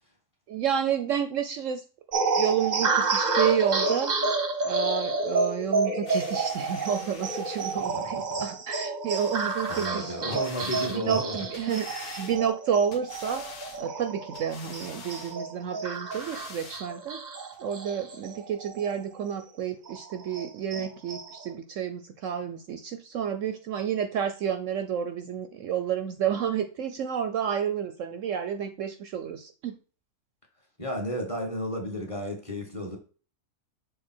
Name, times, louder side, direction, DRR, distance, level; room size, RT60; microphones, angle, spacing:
voice 1, 0.5-1.8 2.4-4.1 4.6-10.4 11.0-13.5 13.8-17.2 17.6-29.8, right 8 dB, 65° right, 0.9 m, -30 dB
sound 1, 2.1-19.0 19.4-19.5 19.9-21.5, right 3 dB, 35° right, 0.8 m, -30 dB
sound 2, 6.1-8.0 9.1-9.9 10.3-11.0 11.4-12.6 12.9-13.8 14.3-15.4 15.9-16.8 17.5-17.6, left 5 dB, 80° left, 1.6 m, -45 dB
voice 2, 7.5-8.4 9.4-11.4 30.8-33.0, equal, 20° left, 1.5 m, -33 dB
6.5 x 3.4 x 4.3 m
omnidirectional pair, 1.6 m